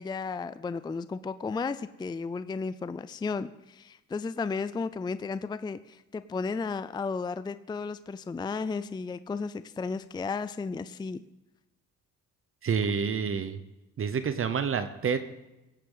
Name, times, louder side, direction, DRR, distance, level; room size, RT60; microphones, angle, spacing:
voice 1, 0.0-11.2, left 4 dB, 15° left, 13 dB, 0.4 m, -34 dB
voice 2, 12.6-13.6 14.0-15.2, right 6 dB, 45° right, 11 dB, 0.8 m, -28 dB
17.0 x 8.4 x 3.9 m, 0.99 s
cardioid pair, 90°, 30 cm